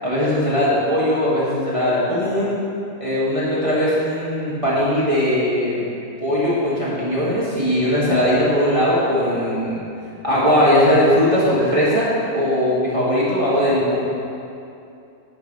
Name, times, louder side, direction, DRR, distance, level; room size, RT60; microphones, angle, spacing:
voice 1, 0.0-2.5 3.0-5.9 6.2-9.8 10.2-12.1 12.3-14.1, equal, 20° right, -10 dB, 1.8 m, -19 dB
9.0 x 4.8 x 6.7 m, 2.6 s
omnidirectional pair, 1.6 m